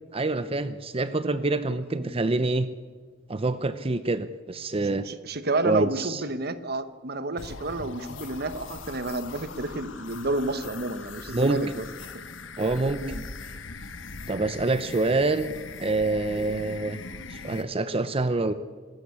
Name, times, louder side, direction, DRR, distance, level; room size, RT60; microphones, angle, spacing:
voice 1, 0.1-2.7 3.3-5.1 5.6-6.2 11.3-11.6 12.6-13.0 14.3-15.5 15.8-17.0 17.3-18.5, right 2 dB, 30° right, 12 dB, 0.7 m, -26 dB
voice 2, 5.0-11.8 13.0-13.2, right 2 dB, 55° right, 12 dB, 1.2 m, -30 dB
sound 1, 7.4-17.6, left 4 dB, 75° left, 1.2 m, -40 dB
25.0 x 13.0 x 8.3 m, 1.5 s
head